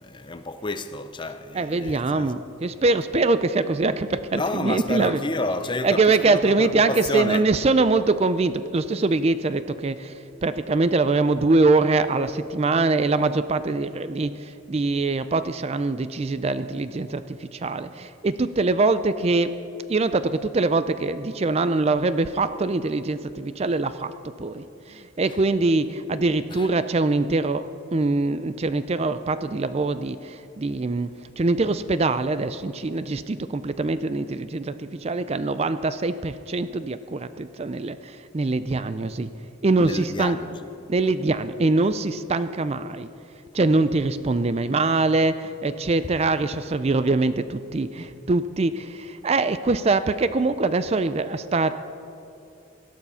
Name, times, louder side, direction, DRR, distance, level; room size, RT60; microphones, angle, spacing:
voice 1, 0.0-2.4 4.3-7.5 25.3-25.4 26.5-26.7 39.8-40.7, left 2 dB, 25° left, 0.6 m, -30 dB
voice 2, 1.5-5.2 5.8-10.1 10.4-19.5 19.9-24.1 24.4-27.6 27.9-31.1 31.4-39.3 39.6-40.4 40.9-43.1 43.5-51.8, right 3 dB, 30° right, 0.4 m, -23 dB
18.0 x 13.5 x 5.6 m
head